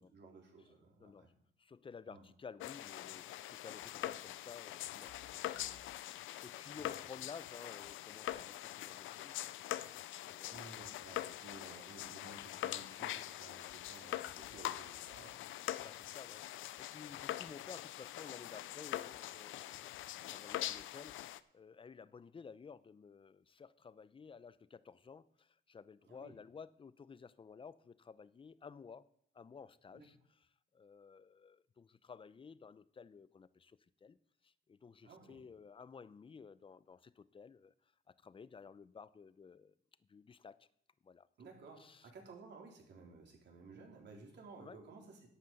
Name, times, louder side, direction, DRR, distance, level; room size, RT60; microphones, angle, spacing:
voice 1, 0.1-1.3 2.1-2.2 6.7-7.0 10.5-15.6 26.1-26.3 29.9-30.1 35.0-35.4 41.4-45.3, right 3 dB, 60° right, 3.9 m, -56 dB
voice 2, 1.0-1.3 1.6-9.9 10.2-11.0 15.8-29.1 29.3-30.2 30.7-34.2 34.4-37.7 38.1-39.7 40.1-40.7 41.0-41.3 41.8-42.1 44.6-44.8, left 5 dB, 25° left, 0.6 m, -54 dB
sound 1, 2.6-21.4, left 14 dB, 85° left, 0.5 m, -44 dB
11.5 x 8.3 x 5.3 m
cardioid pair, 90°, 20 cm